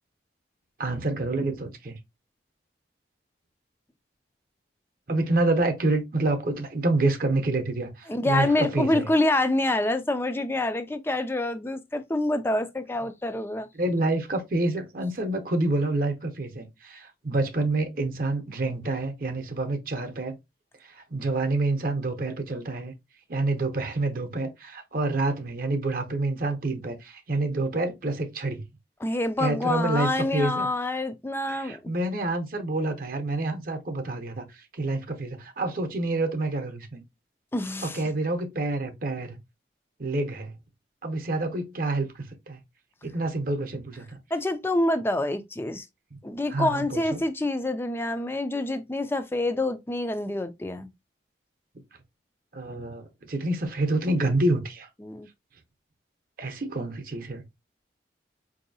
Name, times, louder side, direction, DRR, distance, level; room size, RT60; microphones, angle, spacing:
voice 1, 0.8-2.0 5.1-9.1 13.7-20.4 20.8-22.9 23.3-28.6 29.4-30.7 31.5-37.0 37.8-39.4 40.0-40.5 41.0-42.6 43.0-44.2 46.1-46.2 46.5-47.2 52.5-54.9 56.4-57.4, right 2 dB, 50° right, 0.7 m, -28 dB
voice 2, 8.1-13.7 29.0-31.8 37.5-38.0 44.3-45.9 46.2-50.9 55.0-55.3, left 2 dB, 10° left, 0.3 m, -27 dB
4.7 x 2.6 x 2.6 m
head